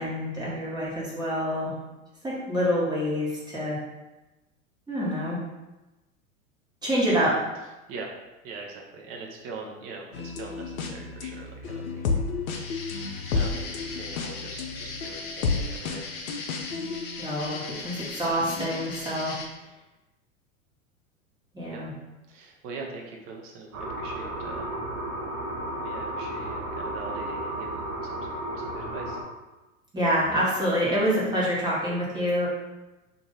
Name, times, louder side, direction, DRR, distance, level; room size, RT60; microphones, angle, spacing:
voice 1, 0.0-1.7 2.2-3.8 4.9-5.4 6.8-7.4 17.2-19.3 21.5-21.9 29.9-32.5, equal, 10° right, -7 dB, 1.3 m, -26 dB
voice 2, 8.4-12.0 13.3-16.0 21.7-21.8 22.3-24.7 25.8-28.3 28.5-29.2, right 3 dB, 35° right, 0 dB, 0.7 m, -42 dB
sound 1, 10.1-17.9 18.4-19.0, left 4 dB, 75° left, 0.6 m, -32 dB
sound 2, 12.5-19.5, left 4 dB, 25° left, 0.5 m, -39 dB
sound 3, 23.7-29.2, right 1 dB, 70° right, 1.0 m, -33 dB
2.9 x 2.6 x 3.9 m, 1.1 s
figure-of-eight pair, 95°, 41 cm